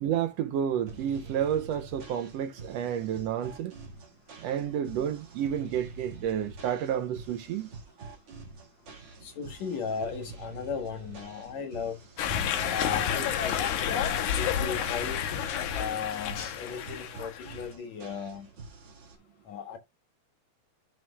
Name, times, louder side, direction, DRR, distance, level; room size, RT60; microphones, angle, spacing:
voice 1, 0.0-3.7 4.4-7.7, right 9 dB, 75° right, 1.6 m, -30 dB
sound 1, 0.9-19.2, right 3 dB, 50° right, 2.8 m, -47 dB
voice 2, 9.2-12.0 12.7-15.2 15.7-18.5 19.5-19.8, left 6 dB, 70° left, 2.6 m, -36 dB
sound 2, 12.2-17.6, left 9 dB, 90° left, 2.4 m, -30 dB
11.0 x 6.2 x 2.3 m
omnidirectional pair, 3.3 m